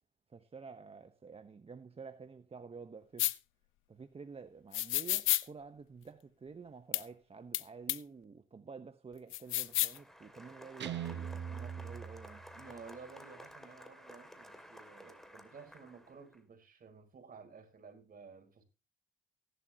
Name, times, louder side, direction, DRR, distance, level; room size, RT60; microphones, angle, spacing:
voice 1, 0.3-3.3 3.9-12.4, right 5 dB, 30° right, 1.0 m, -50 dB
sound 1, 3.2-3.3 4.7-5.4 6.9-7.0 7.5-7.6 7.9-8.0 9.3-10.0, left 16 dB, 90° left, 0.7 m, -30 dB
Applause, 9.5-16.4, equal, ahead, 2.5 m, -54 dB
Guitar, 10.8-12.8, right 8 dB, 60° right, 1.2 m, -41 dB
voice 2, 12.5-18.6, right 5 dB, 45° right, 4.5 m, -53 dB
17.0 x 11.5 x 2.9 m
cardioid pair, 90°, 20 cm